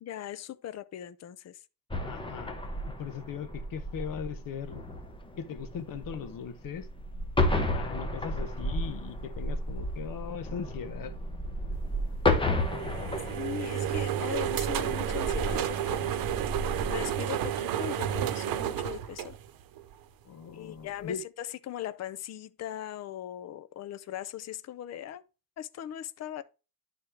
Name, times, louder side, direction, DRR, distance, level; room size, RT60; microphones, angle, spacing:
voice 1, 0.0-1.6 13.3-16.1 16.4-16.5 16.9-19.4 20.5-25.2 25.6-26.4, left 12 dB, 45° left, 0.6 m, -39 dB
sound 1, 1.9-17.1, left 1 dB, 15° left, 1.2 m, -33 dB
voice 2, 2.0-4.8 5.4-6.9 7.5-11.1 20.2-21.2, left 7 dB, 65° left, 1.1 m, -39 dB
sound 2, 12.6-19.9, right 10 dB, 70° right, 0.9 m, -31 dB
11.5 x 4.2 x 3.3 m
cardioid pair, 145°, 35 cm